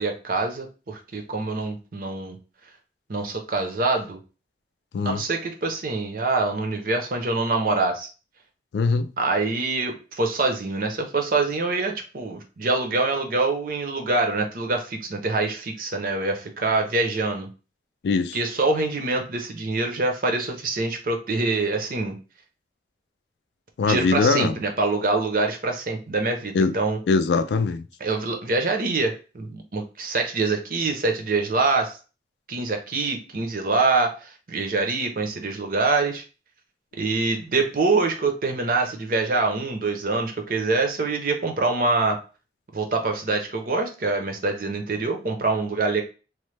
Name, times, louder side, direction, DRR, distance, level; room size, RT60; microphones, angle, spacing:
voice 1, 0.0-2.4 3.1-4.2 5.0-8.1 9.2-17.5 18.3-22.1 23.8-27.0 28.0-32.0 32.5-36.2 36.9-42.2 42.7-46.0, right 3 dB, 50° right, 0.6 m, -25 dB
voice 2, 8.7-9.1 18.0-18.4 23.8-24.5 26.5-26.7 27.1-27.8, left 4 dB, 75° left, 0.3 m, -21 dB
3.1 x 2.1 x 3.2 m
head